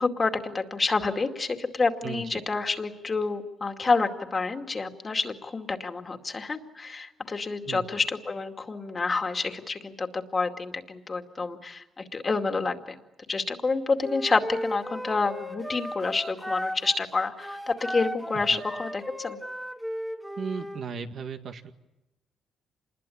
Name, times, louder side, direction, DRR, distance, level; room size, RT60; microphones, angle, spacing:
voice 1, 0.0-12.8 13.3-19.4, left 4 dB, 30° left, 6 dB, 2.3 m, -28 dB
voice 2, 2.0-2.4 7.7-7.8 18.3-18.6 20.4-21.7, right 6 dB, 60° right, 6 dB, 1.9 m, -36 dB
Wind instrument woodwind instrument, 14.0-17.0 17.4-20.8, equal, 5° right, 2.5 m, -36 dB
26.5 x 21.0 x 8.6 m, 0.98 s
cardioid pair, 90°, 0 cm